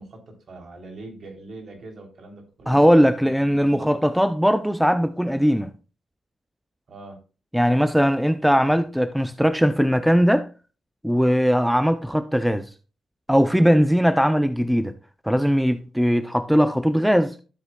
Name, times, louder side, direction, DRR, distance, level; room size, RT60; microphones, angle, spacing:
voice 1, 0.0-4.0 6.9-7.2, right 2 dB, 55° right, 3.5 m, -43 dB
voice 2, 2.7-5.7 7.5-10.5 11.0-12.7 13.3-14.9 15.2-17.4, equal, ahead, 0.6 m, -19 dB
12.5 x 7.9 x 2.3 m
cardioid pair, 85°, 0 cm